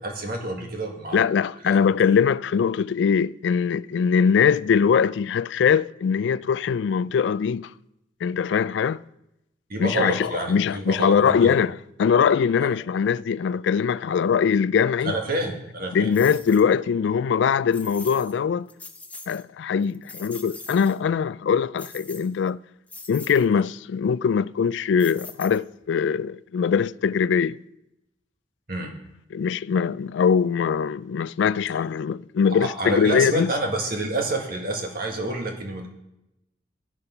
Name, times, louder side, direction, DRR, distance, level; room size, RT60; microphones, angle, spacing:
voice 1, 0.0-1.3 1.7-1.8 9.7-11.6 15.0-16.1 28.7-28.9 32.5-35.9, right 1 dB, 50° right, 1.8 m, -28 dB
voice 2, 1.1-7.7 8.2-9.0 9.8-15.2 15.9-18.7 19.3-22.6 23.1-27.6 29.3-33.5, left 6 dB, 65° left, 0.3 m, -22 dB
sound 1, 16.1-16.7 17.7-18.3 18.7-19.4 19.8-21.0 21.8-22.5 22.9-23.5 25.0-25.8, left 3 dB, 10° left, 0.6 m, -42 dB
10.5 x 8.8 x 5.7 m
head